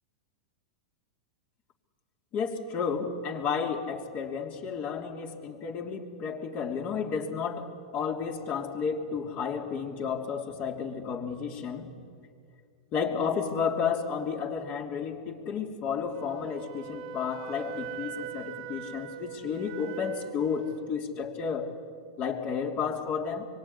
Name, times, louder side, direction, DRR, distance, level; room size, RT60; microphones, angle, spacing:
voice 1, 2.3-11.9 12.9-21.7 22.2-23.5, left 6 dB, 40° left, 4 dB, 3.2 m, -32 dB
Wind instrument woodwind instrument, 16.1-20.8, right 8 dB, 60° right, 1.7 m, -41 dB
25.0 x 24.0 x 9.8 m, 2.2 s
hypercardioid pair, 120°, 4 cm